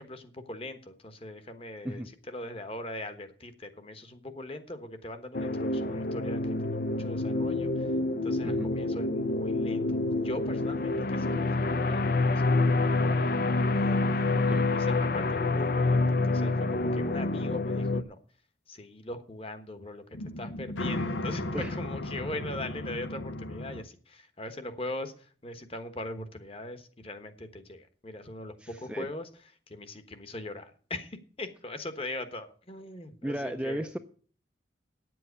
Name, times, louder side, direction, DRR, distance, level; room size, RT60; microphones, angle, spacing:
voice 1, 0.0-7.9 8.2-12.4 12.7-14.2 14.7-18.2 18.7-20.0 20.4-29.3 29.7-33.9, left 1 dB, 30° left, 9 dB, 1.2 m, -41 dB
sound 1, 5.3-18.0, left 2 dB, 50° left, 0.5 m, -27 dB
voice 2, 14.3-14.7 21.5-21.8 22.4-22.5 28.6-29.1 33.2-34.0, equal, 5° right, 7 dB, 0.5 m, -35 dB
sound 2, 20.1-23.8, left 1 dB, 90° left, 0.8 m, -35 dB
9.4 x 7.7 x 8.1 m, 0.44 s
head